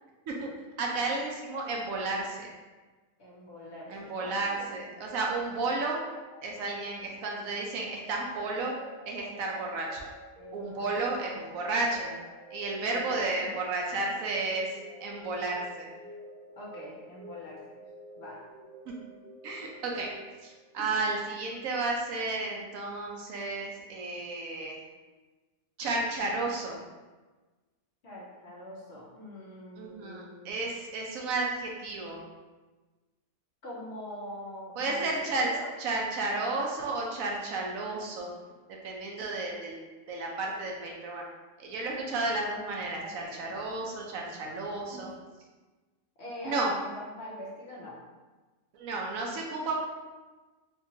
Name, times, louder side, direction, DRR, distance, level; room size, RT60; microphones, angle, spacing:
voice 1, 0.8-2.5 3.9-6.0 6.4-8.7 9.1-10.1 10.5-12.1 12.5-14.7 15.0-15.9 18.9-19.0 19.4-20.1 20.4-24.8 25.8-26.8 29.8-32.2 34.8-35.5 35.8-38.3 38.8-39.8 40.1-41.2 41.6-45.1 46.4-46.7 48.7-49.8, right 3 dB, 75° right, -1 dB, 1.1 m, -32 dB
voice 2, 3.2-4.7 10.4-11.1 12.9-13.5 16.6-17.6 18.2-18.4 28.0-30.5 33.6-35.7 43.0-43.5 44.9-45.0 46.2-48.0, left 1 dB, 55° left, -5 dB, 1.0 m, -44 dB
sound 1, 4.2-20.8, equal, 35° right, 0.9 m, -50 dB
3.6 x 2.9 x 2.7 m, 1.3 s
omnidirectional pair, 1.5 m